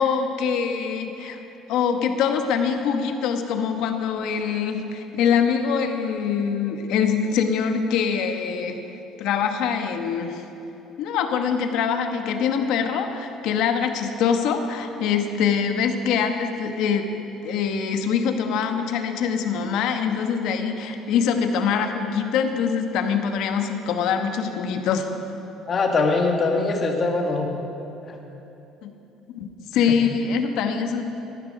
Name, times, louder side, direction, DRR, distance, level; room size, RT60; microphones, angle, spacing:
voice 1, 0.0-1.4 1.7-8.8 9.2-10.4 11.0-17.1 17.4-25.1 28.8-28.9 29.3-31.0, left 6 dB, 70° left, 6 dB, 1.1 m, -24 dB
voice 2, 25.7-27.5 28.1-28.2 29.9-30.0, left 3 dB, 35° left, 2 dB, 1.6 m, -22 dB
15.0 x 11.5 x 5.3 m, 3.0 s
cardioid pair, 130°, 0 cm